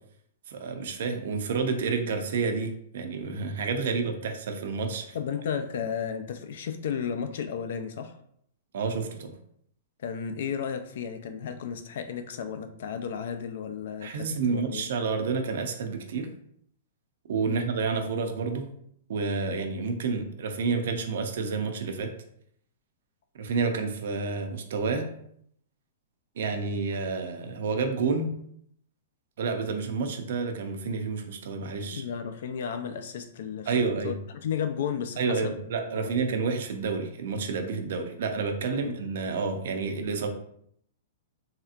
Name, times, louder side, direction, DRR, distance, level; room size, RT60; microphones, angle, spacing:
voice 1, 0.5-5.2 8.7-9.3 14.0-16.3 17.3-18.7 19.1-22.1 23.4-25.1 26.4-28.3 29.4-32.0 33.7-34.2 35.2-40.3, right 4 dB, 60° right, 4 dB, 0.5 m, -29 dB
voice 2, 5.1-8.2 10.0-14.9 17.4-17.6 31.9-34.2 34.4-35.6 35.9-36.1 38.7-39.0, left 7 dB, 60° left, 8 dB, 0.4 m, -33 dB
3.3 x 2.8 x 2.4 m, 0.68 s
hypercardioid pair, 165°, 0 cm